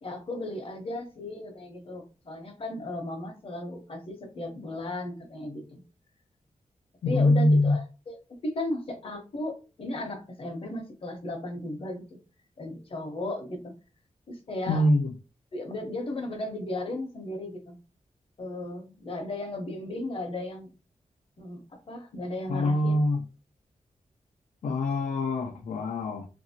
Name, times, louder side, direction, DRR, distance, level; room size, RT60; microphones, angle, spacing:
voice 1, 0.0-5.8 7.0-8.2 8.4-12.0 12.6-13.7 14.3-14.8 15.5-17.8 18.4-20.7 21.4-23.0, left 1 dB, 45° left, 0.8 m, -35 dB
voice 2, 7.0-7.8 14.7-15.1 22.5-23.2 24.6-26.3, left 1 dB, 60° left, 0.4 m, -24 dB
2.8 x 2.6 x 2.7 m
wide cardioid pair, 130°, 13 cm